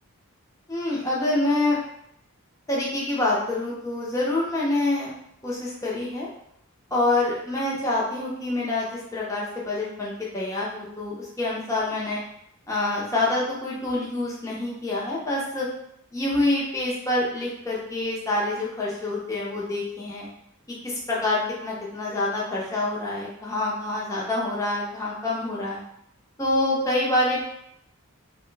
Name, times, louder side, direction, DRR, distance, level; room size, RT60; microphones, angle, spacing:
voice 1, 0.7-1.8 2.7-5.1 5.4-6.3 6.9-12.2 12.7-15.7 16.1-20.3 20.7-25.8 26.4-27.4, left 2 dB, 15° left, -6 dB, 0.6 m, -26 dB
2.9 x 2.2 x 3.2 m, 0.75 s
head